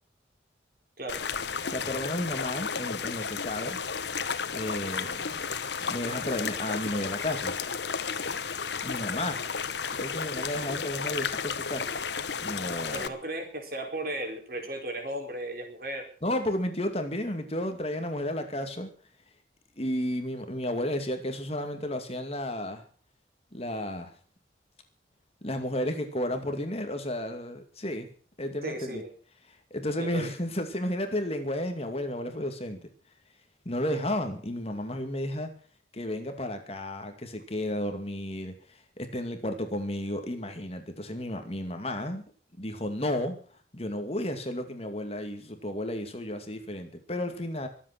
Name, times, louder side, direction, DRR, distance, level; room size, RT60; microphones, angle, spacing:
sound 1, 1.1-13.1, left 6 dB, 75° left, 1.2 m, -33 dB
voice 1, 1.7-3.8 4.5-5.4 5.8-7.6 8.8-9.4 10.0-11.9 12.4-13.1 16.2-18.9 19.8-22.8 23.5-24.1 25.4-28.1 28.4-29.0 29.7-32.9 33.7-35.5 35.9-38.5 39.0-42.2 42.6-43.4 43.7-47.7, left 1 dB, 35° left, 6 dB, 2.4 m, -32 dB
voice 2, 12.9-16.1 28.6-29.1 30.0-30.3, right 1 dB, 55° right, 4 dB, 4.8 m, -35 dB
24.0 x 8.5 x 6.1 m, 0.42 s
head